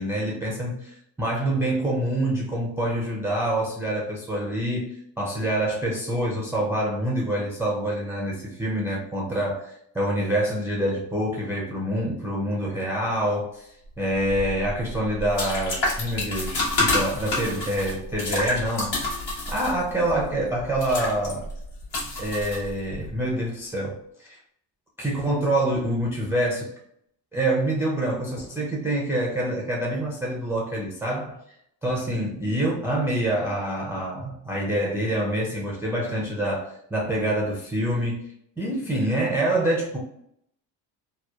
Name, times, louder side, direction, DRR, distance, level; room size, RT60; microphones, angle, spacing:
voice 1, 0.0-18.9 19.5-21.5 22.2-24.4 25.0-26.7 27.3-31.4 31.8-38.3 38.6-40.0, right 1 dB, 5° right, -4 dB, 0.3 m, -26 dB
sound 1, 14.2-23.1, left 2 dB, 60° left, 1.2 m, -29 dB
2.8 x 2.0 x 2.2 m, 0.73 s
supercardioid pair, 85°, 46 cm